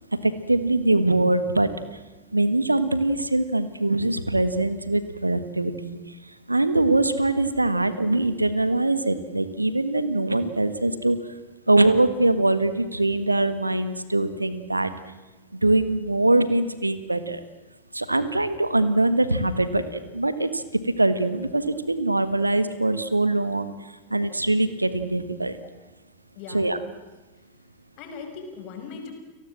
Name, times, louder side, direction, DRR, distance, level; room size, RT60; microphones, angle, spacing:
voice 1, 0.2-1.7 2.3-6.0 6.5-11.2 11.7-14.9 15.5-17.4 17.9-23.7 24.1-25.6 26.5-26.8, right 2 dB, 85° right, 13 dB, 1.6 m, -23 dB
voice 2, 26.3-26.8 28.0-29.1, left 5 dB, 40° left, 5 dB, 5.5 m, -39 dB
30.0 x 18.5 x 7.5 m, 1.2 s
figure-of-eight pair, 90°, 0 cm